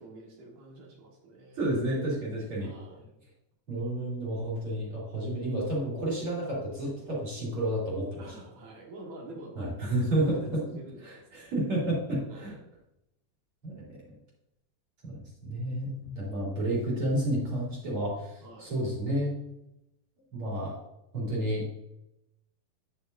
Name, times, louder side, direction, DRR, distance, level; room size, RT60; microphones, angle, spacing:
voice 1, 0.0-1.8 2.6-3.1 8.2-11.2 12.3-12.6 18.4-18.7, right 2 dB, 60° right, 0 dB, 2.7 m, -47 dB
voice 2, 1.6-2.7 3.7-8.2 9.6-10.6 11.0-12.5 13.6-14.0 15.0-19.3 20.3-20.8 21.1-21.7, right 1 dB, 40° right, -6 dB, 3.5 m, -31 dB
9.6 x 7.1 x 2.6 m, 0.85 s
omnidirectional pair, 3.9 m